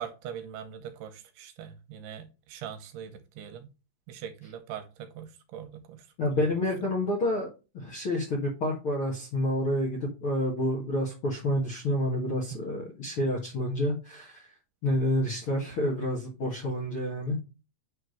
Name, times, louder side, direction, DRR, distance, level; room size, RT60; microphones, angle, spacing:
voice 1, 0.0-3.7 4.1-6.4 12.5-12.6, right 9 dB, 75° right, 2.6 m, -42 dB
voice 2, 6.2-7.5 7.7-14.5 14.8-17.4, left 1 dB, 50° left, 1.6 m, -29 dB
9.0 x 3.5 x 6.4 m
omnidirectional pair, 5.0 m